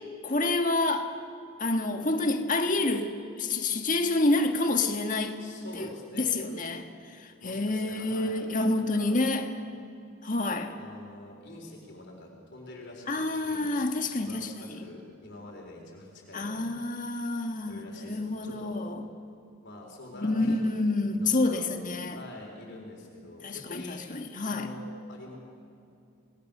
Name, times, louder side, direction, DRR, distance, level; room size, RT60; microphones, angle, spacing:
voice 1, 0.2-1.1 1.6-5.4 5.8-6.9 7.2-9.5 10.2-10.7 13.1-14.8 16.3-19.0 20.2-22.2 23.4-24.7, left 2 dB, 40° left, 1.6 m, -28 dB
voice 2, 5.4-6.3 7.4-8.4 8.7-9.2 10.8-13.8 14.1-16.8 17.7-18.9 19.6-21.7 22.1-24.0 24.4-25.4, left 1 dB, 55° left, 3.9 m, -46 dB
27.5 x 19.5 x 6.7 m
head